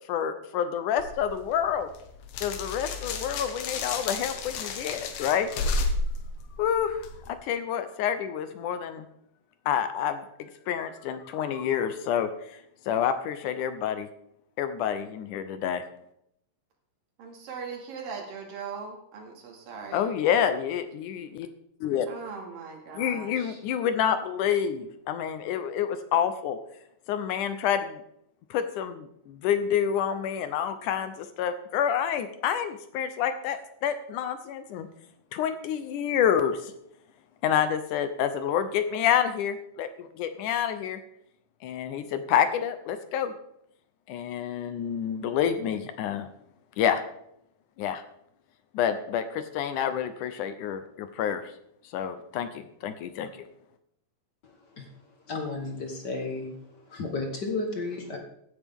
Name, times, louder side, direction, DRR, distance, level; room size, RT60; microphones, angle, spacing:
voice 1, 0.1-1.9 2.4-5.5 6.6-9.1 9.7-12.3 12.9-14.1 14.6-15.8 19.9-21.5 21.8-22.1 23.0-26.6 27.1-28.0 28.5-34.9 35.3-36.7 37.4-41.0 41.6-43.3 44.1-46.3 46.8-47.0 47.8-48.0 48.7-51.4 51.9-53.4, left 9 dB, 75° left, 10 dB, 2.1 m, -28 dB
sound 1, 1.0-7.3, left 3 dB, 90° left, 3.0 m, -32 dB
voice 2, 17.2-20.1 22.1-23.6, right 5 dB, 75° right, 0 dB, 4.1 m, -40 dB
voice 3, 54.4-54.9 55.3-56.6 56.9-58.2, left 3 dB, 55° left, 2 dB, 1.1 m, -33 dB
16.0 x 9.7 x 3.6 m, 0.76 s
omnidirectional pair, 4.1 m